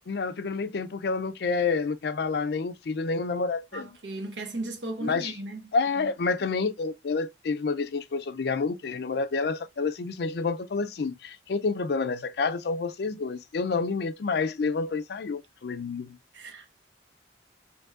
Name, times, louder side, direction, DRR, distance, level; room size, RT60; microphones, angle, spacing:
voice 1, 0.1-4.0 5.0-5.3 5.7-16.2, left 4 dB, 65° left, 0.4 m, -29 dB
voice 2, 3.7-5.7 6.0-6.1 16.3-16.7, right 2 dB, 85° right, 1.2 m, -36 dB
5.2 x 3.1 x 2.4 m
head